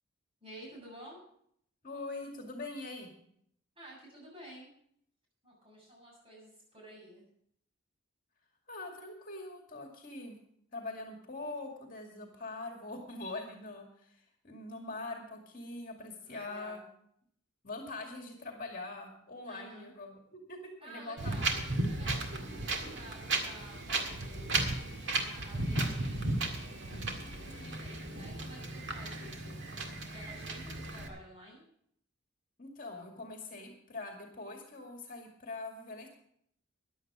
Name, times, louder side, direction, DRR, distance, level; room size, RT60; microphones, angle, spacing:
voice 1, 0.4-1.2 3.8-4.7 5.4-7.3 16.2-16.9 19.5-19.9 20.8-24.7 25.3-26.6 26.9-29.7 30.1-31.6, right 1 dB, 30° right, -3 dB, 7.4 m, -52 dB
voice 2, 1.8-3.1 8.7-10.4 10.7-16.8 17.6-21.5 32.6-36.1, left 2 dB, 45° left, 2 dB, 2.2 m, -43 dB
Wind, 21.2-31.1, right 2 dB, 65° right, 1.9 m, -35 dB
14.5 x 11.0 x 4.9 m, 0.68 s
head